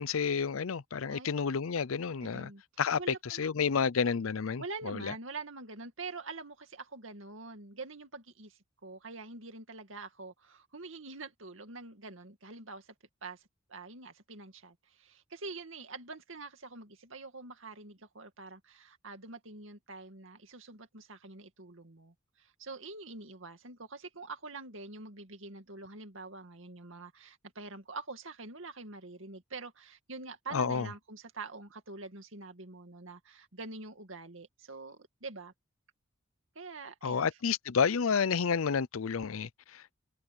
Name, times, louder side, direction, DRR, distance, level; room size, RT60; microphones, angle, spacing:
voice 1, 0.0-2.5 2.8-5.1 30.5-30.9 37.0-40.0, left 6 dB, 90° left, 0.6 m, -30 dB
voice 2, 2.2-2.6 3.0-3.5 4.6-12.9 13.2-35.5 36.6-37.3, right 3 dB, 75° right, 2.3 m, -45 dB
head